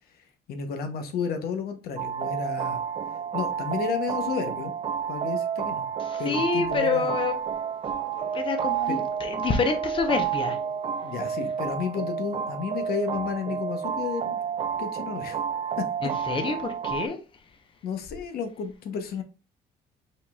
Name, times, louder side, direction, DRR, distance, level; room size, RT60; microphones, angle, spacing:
voice 1, 0.5-2.8 3.3-4.7 5.1-5.9 6.2-7.1 11.0-14.4 14.8-15.4 17.8-19.2, left 6 dB, 65° left, 0.9 m, -32 dB
sound 1, 2.0-17.1, right 8 dB, 35° right, 0.4 m, -30 dB
voice 2, 6.0-7.4 7.8-10.6 16.0-17.2, left 5 dB, 30° left, 0.8 m, -28 dB
5.2 x 4.0 x 2.3 m
cardioid pair, 110°, 17 cm